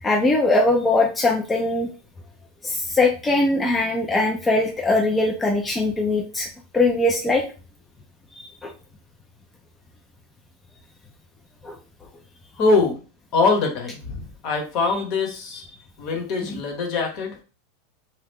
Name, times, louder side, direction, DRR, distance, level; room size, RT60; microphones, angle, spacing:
voice 1, 0.0-1.9 2.6-6.5 6.7-7.4 8.4-8.7 11.6-11.8 15.5-15.6 16.5-16.6, left 2 dB, 15° left, 0 dB, 0.5 m, -21 dB
voice 2, 12.6-13.0 13.3-15.6 16.0-17.4, left 3 dB, 50° left, 3 dB, 1.1 m, -23 dB
2.9 x 2.3 x 3.6 m, 0.34 s
supercardioid pair, 125°, 0 cm